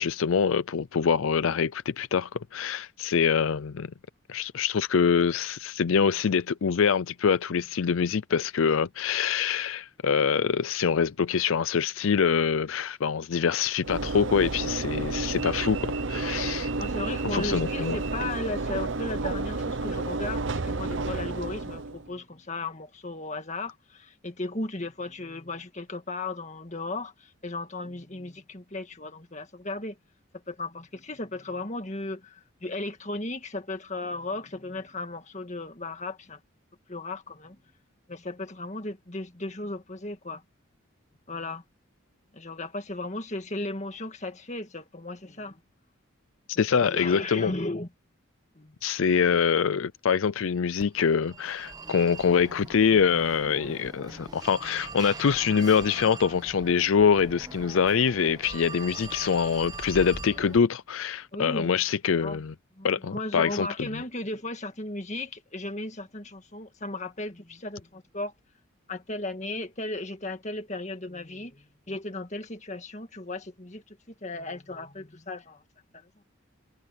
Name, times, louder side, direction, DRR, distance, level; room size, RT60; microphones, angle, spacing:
voice 1, 0.0-3.9 4.3-16.7 17.2-18.0 46.5-47.5 48.8-62.5 62.8-63.7, left 6 dB, 70° left, 0.5 m, -25 dB
Train / Engine / Alarm, 13.8-22.1, right 3 dB, 60° right, 0.9 m, -31 dB
voice 2, 16.8-30.0 30.5-36.4 36.9-37.6 38.1-40.4 41.3-41.6 42.3-45.6 46.8-47.9 48.6-48.7 49.3-49.4 61.3-61.7 62.2-62.4 62.8-68.3 68.9-75.6 75.9-76.1, left 2 dB, 35° left, 1.9 m, -36 dB
Telephone, 50.8-60.6, right 3 dB, 20° right, 1.2 m, -41 dB
head